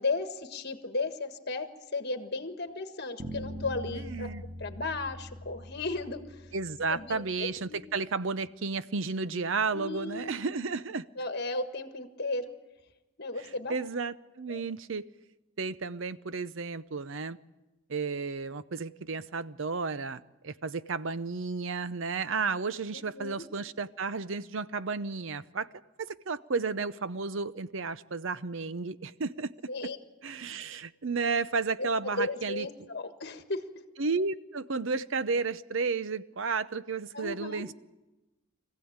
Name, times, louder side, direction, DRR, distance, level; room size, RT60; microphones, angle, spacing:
voice 1, 0.0-1.7 1.9-4.3 4.6-6.4 6.9-7.8 9.7-10.5 11.2-12.5 13.2-13.7 14.5-14.6 22.9-23.4 29.7-30.0 31.8-31.9 32.1-33.6 37.1-37.6, left 3 dB, 50° left, 8 dB, 1.6 m, -35 dB
sound 1, 3.2-7.3, equal, 20° right, 2.0 m, -42 dB
voice 2, 3.9-4.4 6.5-11.1 13.4-15.1 15.6-17.4 17.9-25.7 26.0-29.5 30.2-32.7 34.0-37.7, right 4 dB, 60° right, 15 dB, 0.7 m, -32 dB
24.0 x 15.5 x 8.8 m, 1.1 s
head